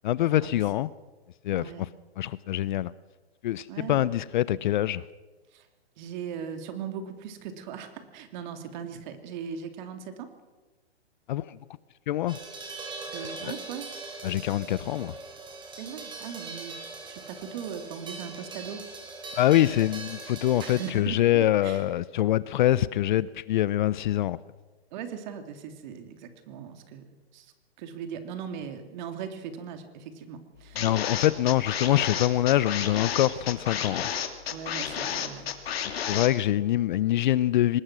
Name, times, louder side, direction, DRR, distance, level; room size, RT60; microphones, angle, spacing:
voice 1, 0.0-0.9 1.4-1.9 2.2-2.9 3.4-5.0 11.3-11.6 12.1-12.4 13.4-13.5 14.2-15.2 19.4-24.4 30.8-34.1 36.1-37.8, left 13 dB, 45° left, 0.7 m, -24 dB
voice 2, 1.5-1.9 3.7-4.1 5.5-5.6 6.0-10.3 13.1-13.9 15.8-16.8 17.1-18.8 20.6-21.8 24.9-27.0 27.3-27.5 27.8-30.9 34.5-35.5, right 7 dB, 45° right, 3.1 m, -39 dB
sound 1, 12.3-20.9, right 3 dB, 15° right, 4.5 m, -41 dB
sound 2, 30.8-36.3, left 8 dB, 65° left, 2.7 m, -31 dB
24.0 x 20.5 x 6.2 m
hypercardioid pair, 135°, 33 cm